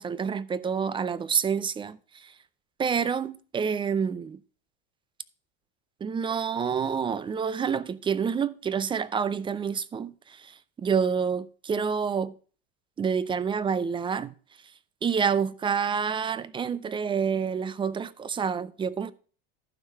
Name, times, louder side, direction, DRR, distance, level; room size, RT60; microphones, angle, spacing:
voice 1, 0.0-2.3 2.8-4.4 6.0-12.3 13.0-14.3 15.0-19.1, right 6 dB, 15° right, 0.4 m, -28 dB
11.5 x 4.7 x 5.5 m
supercardioid pair, 110°, 29 cm